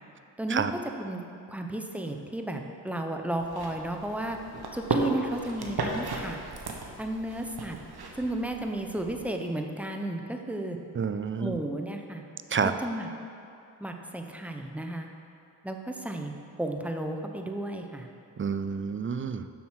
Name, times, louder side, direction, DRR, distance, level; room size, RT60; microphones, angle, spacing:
voice 1, 1.5-4.4 4.7-6.4 7.0-7.8 8.2-10.8 11.4-12.2 12.6-13.1 13.8-15.1 15.6-16.3 16.6-18.1, right 1 dB, 5° right, 3 dB, 0.9 m, -33 dB
sound 1, 3.4-9.3, right 3 dB, 60° right, 1.2 m, -35 dB
voice 2, 10.9-11.6 12.5-12.7 18.4-19.5, right 6 dB, 30° right, 10 dB, 0.5 m, -29 dB
7.2 x 6.2 x 6.2 m, 2.6 s
cardioid pair, 45°, 43 cm